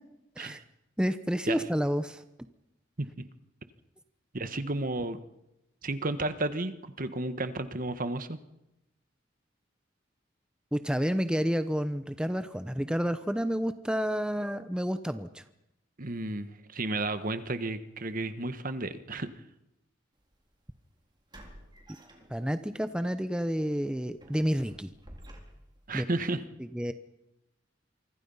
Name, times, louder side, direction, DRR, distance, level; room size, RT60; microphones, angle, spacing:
voice 1, 1.0-2.2 10.7-15.4 17.0-17.2 22.3-24.9 25.9-26.1 26.7-26.9, equal, 5° right, 10 dB, 0.8 m, -30 dB
voice 2, 4.3-5.2 5.8-8.4 16.0-19.3 25.9-26.4, right 2 dB, 45° right, 11 dB, 1.4 m, -32 dB
sound 1, 20.2-20.3 21.3-22.8 23.2-23.4 23.8-25.9, equal, 25° right, 4.2 m, -51 dB
27.0 x 25.0 x 5.6 m, 0.89 s
head